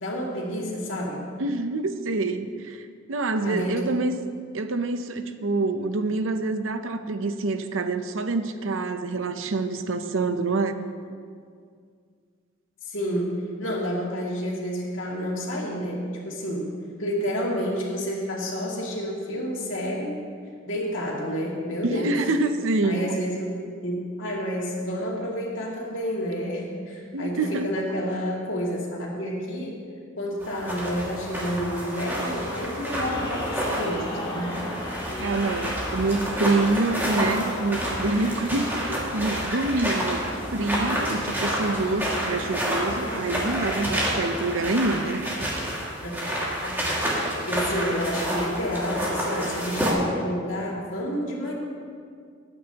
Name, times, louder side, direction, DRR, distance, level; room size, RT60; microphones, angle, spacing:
voice 1, 0.0-1.2 3.4-4.0 10.5-10.6 12.8-16.7 17.0-20.1 20.6-22.2 22.8-29.8 30.2-34.5 46.0-46.3 46.6-46.8 47.4-51.5, equal, 75° left, -3 dB, 2.4 m, -30 dB
voice 2, 1.4-4.1 4.5-10.8 21.8-23.1 27.1-27.7 35.2-45.2, right 3 dB, 85° right, 9 dB, 0.7 m, -26 dB
sound 1, 30.4-49.9, equal, 10° right, 2.1 m, -29 dB
sound 2, 33.0-45.1, left 1 dB, 20° left, 1.3 m, -36 dB
19.5 x 9.1 x 2.9 m, 2.1 s
head